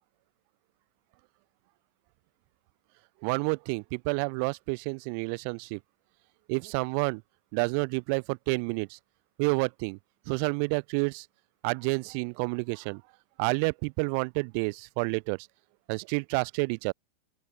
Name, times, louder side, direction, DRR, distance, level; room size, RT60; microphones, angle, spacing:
voice 1, 3.2-5.8 6.5-7.2 7.5-9.0 9.4-10.0 10.3-11.3 11.6-13.0 13.4-15.5 15.9-16.9, right 38 dB, 45° right, 0.7 m, -29 dB
open air
figure-of-eight pair, 90°, 0 cm